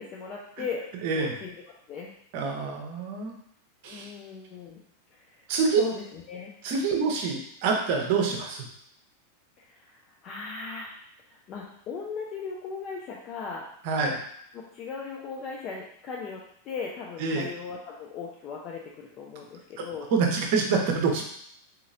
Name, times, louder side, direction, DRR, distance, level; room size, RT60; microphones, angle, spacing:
voice 1, 0.0-1.6 1.9-2.1 3.8-4.8 5.8-6.5 6.9-7.1 9.8-10.0 10.2-10.9 11.3-13.7 14.5-20.1, left 5 dB, 35° left, -3 dB, 0.5 m, -37 dB
voice 2, 1.0-1.3 2.3-3.3 3.8-4.1 5.5-5.8 6.6-8.7 13.8-14.2 17.2-17.5 19.8-19.9 20.1-21.2, right 5 dB, 45° right, 2 dB, 0.7 m, -26 dB
3.9 x 2.8 x 2.5 m, 0.69 s
figure-of-eight pair, 90°, 0 cm